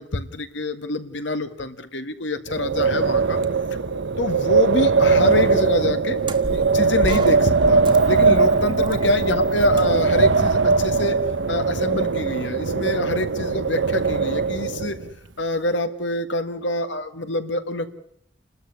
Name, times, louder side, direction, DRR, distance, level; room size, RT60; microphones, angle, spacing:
voice 1, 0.0-3.4 4.2-6.2 6.5-7.8 8.1-15.0 15.4-17.9, left 2 dB, 80° left, 9 dB, 1.8 m, -26 dB
Wind, 2.5-15.1, right 4 dB, 75° right, 0.9 m, -20 dB
sound 1, 6.2-11.4, right 1 dB, 30° right, 1.7 m, -34 dB
30.0 x 13.0 x 9.7 m, 0.74 s
head